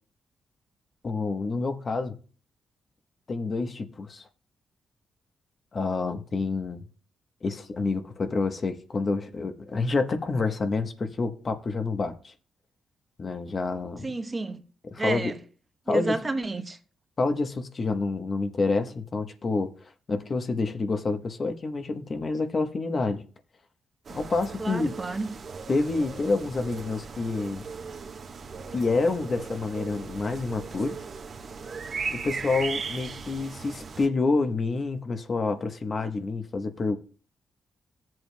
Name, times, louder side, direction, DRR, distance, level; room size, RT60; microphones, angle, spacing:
voice 1, 1.0-2.2 3.3-4.2 5.7-6.8 7.4-12.3 13.2-14.1 14.8-15.3 15.9-16.2 17.2-19.7 20.1-23.2 24.1-24.9 25.7-27.6 28.7-31.0 32.1-37.0, left 3 dB, 45° left, 1.1 m, -28 dB
voice 2, 14.0-14.6 15.0-15.4 15.9-16.8 24.6-25.3, right 3 dB, 30° right, 1.0 m, -30 dB
sound 1, 24.1-34.1, right 5 dB, 60° right, 1.3 m, -38 dB
14.0 x 7.7 x 2.3 m
supercardioid pair, 60°, 0 cm